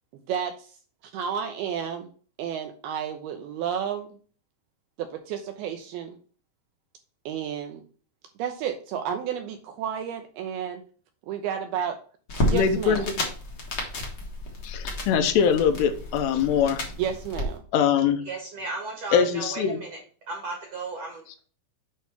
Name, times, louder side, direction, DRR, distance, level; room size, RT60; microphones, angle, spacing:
voice 1, 0.3-0.8 1.0-2.1 2.4-4.2 5.0-6.2 7.3-7.9 8.4-10.8 11.3-12.0 12.5-13.1 17.0-17.6, right 8 dB, 85° right, 6 dB, 2.3 m, -31 dB
sound 1, 12.3-17.4, left 1 dB, 60° left, 1.1 m, -31 dB
voice 2, 12.5-13.2 14.6-16.8 17.7-18.2 19.1-19.8, left 7 dB, 80° left, 8 dB, 2.7 m, -22 dB
voice 3, 18.2-20.0 20.3-21.4, right 3 dB, 55° right, 0 dB, 1.9 m, -35 dB
8.2 x 3.1 x 5.7 m, 0.41 s
omnidirectional pair, 4.9 m